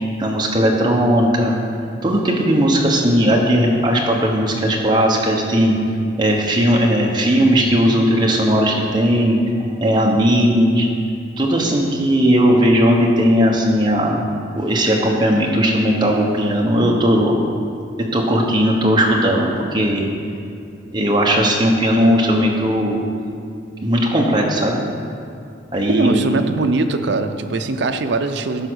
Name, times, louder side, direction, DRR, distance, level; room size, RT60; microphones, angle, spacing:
voice 1, 0.2-1.6 2.0-5.7 6.2-9.4 9.8-10.9 11.4-14.3 14.6-17.4 18.1-20.0 20.9-23.0 23.8-24.8 25.7-26.2, equal, 20° right, -2 dB, 1.1 m, -17 dB
voice 2, 25.9-28.7, right 3 dB, 65° right, 8 dB, 0.5 m, -21 dB
13.0 x 4.9 x 6.3 m, 2.5 s
head